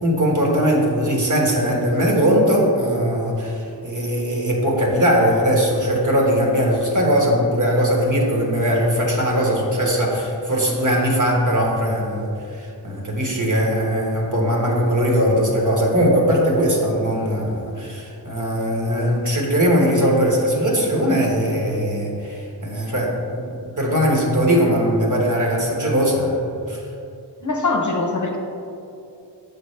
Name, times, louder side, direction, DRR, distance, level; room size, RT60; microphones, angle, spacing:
voice 1, 0.0-26.4 26.7-26.8, equal, 45° right, -2 dB, 1.3 m, -20 dB
voice 2, 27.4-28.4, left 3 dB, 45° left, 2 dB, 0.7 m, -22 dB
6.9 x 5.2 x 3.3 m, 2.7 s
wide cardioid pair, 50°, 42 cm